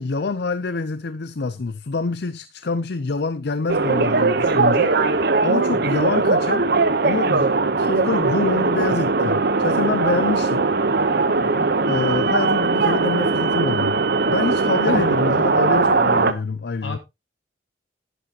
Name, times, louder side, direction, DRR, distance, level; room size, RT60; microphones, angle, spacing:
voice 1, 0.0-5.0 5.4-6.6 7.0-10.7 11.8-14.0 14.3-17.0, left 4 dB, 60° left, 0.6 m, -26 dB
sound 1, 3.7-16.3, right 3 dB, 55° right, 0.9 m, -20 dB
voice 2, 5.7-5.9 11.4-11.7 14.8-15.0 16.8-17.0, left 2 dB, 80° left, 2.4 m, -34 dB
11.0 x 10.0 x 2.8 m
head